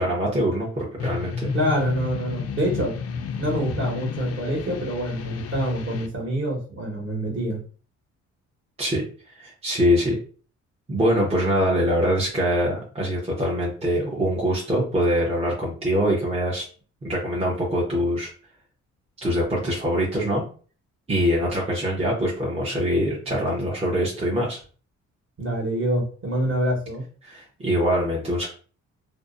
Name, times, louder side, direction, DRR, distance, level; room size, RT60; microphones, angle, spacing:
voice 1, 0.0-1.5 8.8-9.0 9.3-10.2 10.9-16.6 17.0-18.3 19.2-20.4 21.1-24.6 27.2-28.5, equal, 20° right, -4 dB, 0.7 m, -23 dB
sound 1, 1.0-6.1, left 5 dB, 55° left, 0.4 m, -31 dB
voice 2, 1.5-2.9 3.4-7.6 25.4-27.0, equal, 40° right, -1 dB, 1.1 m, -26 dB
2.5 x 2.0 x 2.4 m, 0.41 s
cardioid pair, 90°, 30 cm